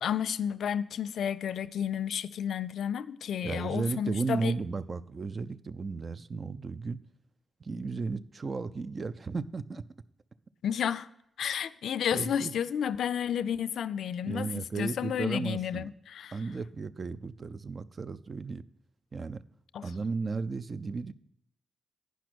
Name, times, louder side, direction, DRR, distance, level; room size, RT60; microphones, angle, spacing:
voice 1, 0.0-4.5 10.6-11.1 11.4-16.4 19.7-19.8, left 8 dB, 75° left, 0.3 m, -31 dB
voice 2, 3.4-7.0 7.6-9.8 12.1-12.5 14.2-15.9 16.3-18.6 19.1-19.4 19.8-21.1, right 4 dB, 45° right, 0.4 m, -34 dB
9.2 x 6.0 x 6.1 m
supercardioid pair, 50°, 0 cm